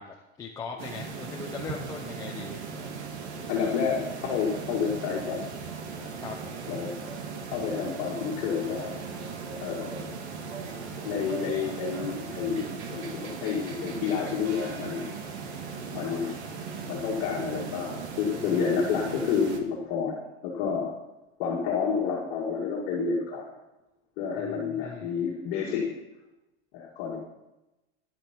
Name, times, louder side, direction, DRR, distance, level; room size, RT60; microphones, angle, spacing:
voice 1, 0.0-2.6 6.2-6.5 24.4-25.1, left 5 dB, 10° left, -2 dB, 0.7 m, -40 dB
sound 1, 0.8-19.6, right 5 dB, 80° right, 2.0 m, -38 dB
voice 2, 3.5-5.4 6.0-6.1 6.7-6.9 7.5-8.9 9.6-10.1 11.0-15.1 15.7-16.3 16.9-20.2 20.4-20.9 21.4-23.4 24.2-25.9 26.7-27.2, left 6 dB, 40° left, -4 dB, 2.2 m, -29 dB
11.5 x 10.5 x 4.5 m, 0.98 s
supercardioid pair, 175°, 33 cm